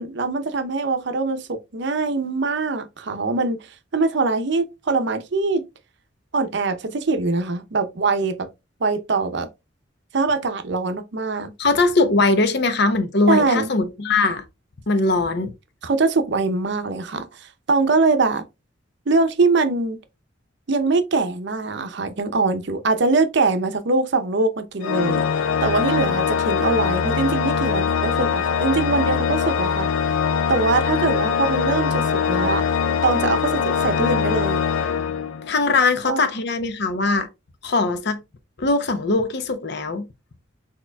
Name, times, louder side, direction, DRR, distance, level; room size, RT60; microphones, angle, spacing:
voice 1, 0.0-3.7 3.9-5.6 6.3-8.5 8.8-9.5 10.1-11.5 13.3-13.7 15.8-17.3 17.7-18.4 19.1-20.0 20.7-25.2 25.6-29.9 30.5-32.6 33.0-34.6 36.0-36.2, right 3 dB, 60° right, 0.6 m, -22 dB
voice 2, 11.6-14.4 14.9-15.5 35.5-37.3 37.6-38.2 38.6-40.1, left 3 dB, 60° left, 0.7 m, -20 dB
Organ, 24.8-35.7, left 6 dB, 90° left, 0.4 m, -22 dB
6.5 x 2.9 x 2.3 m
head